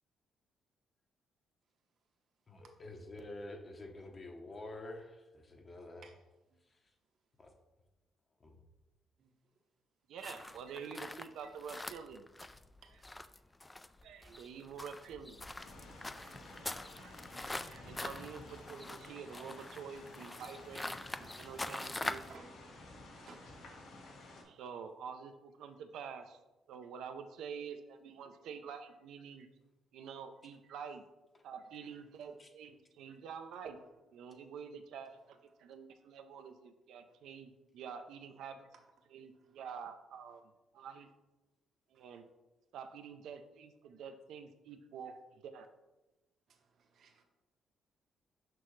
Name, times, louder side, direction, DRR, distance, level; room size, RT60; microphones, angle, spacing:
voice 1, 2.5-6.0 6.7-6.8 7.4-7.5 8.4-8.6 31.3-31.5 32.4-32.5, left 2 dB, 35° left, 0.9 m, -48 dB
voice 2, 10.1-12.2 14.0-15.5 16.2-16.7 17.0-22.3 24.4-26.4 26.7-29.5 29.9-31.0 31.4-33.8 34.1-37.5 37.8-38.7 39.1-40.4 40.8-41.1 41.9-42.2 42.7-45.2 45.4-45.7, right 6 dB, 80° right, 0.6 m, -48 dB
sound 1, 10.2-22.4, left 2 dB, 15° left, 0.3 m, -44 dB
sound 2, 15.5-24.4, left 2 dB, 80° left, 1.6 m, -53 dB
voice 3, 21.6-22.6 23.2-23.8 33.1-33.2 37.0-37.2 38.7-38.8 39.3-39.6 41.9-42.2 46.5-47.2, right 5 dB, 65° right, 1.0 m, -60 dB
6.0 x 5.7 x 3.2 m
cardioid pair, 90°, 0 cm